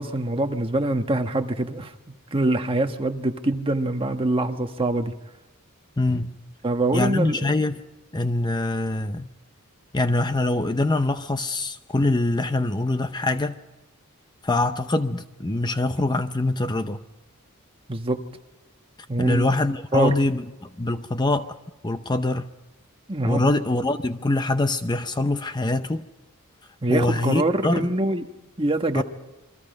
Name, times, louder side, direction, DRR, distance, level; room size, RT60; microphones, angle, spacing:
voice 1, 0.0-1.9 2.3-5.1 6.6-7.5 17.9-18.2 19.1-19.4 19.9-20.1 23.1-23.4 26.8-28.3 28.6-29.0, right 2 dB, 25° right, 1.4 m, -24 dB
voice 2, 6.0-6.3 6.9-7.8 8.1-9.3 9.9-13.6 14.4-17.0 19.2-21.5 21.8-22.5 23.2-26.1 26.9-27.9 28.9-29.0, left 2 dB, 20° left, 0.7 m, -24 dB
28.5 x 23.0 x 5.3 m
head